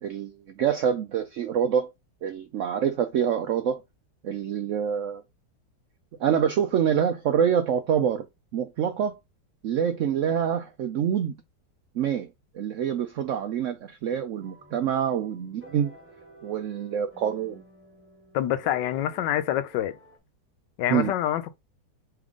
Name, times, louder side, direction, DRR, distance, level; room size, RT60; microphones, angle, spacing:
voice 1, 0.0-1.9 2.2-3.8 4.2-5.2 6.2-8.3 8.5-9.2 9.6-11.4 11.9-12.3 12.5-15.9 16.4-17.6 20.9-21.1, right 8 dB, 80° right, 0.7 m, -26 dB
sound 1, 14.4-20.2, right 2 dB, 5° right, 1.5 m, -52 dB
voice 2, 18.3-19.9 20.8-21.6, left 12 dB, 80° left, 1.2 m, -26 dB
3.6 x 3.4 x 3.5 m
omnidirectional pair, 1.9 m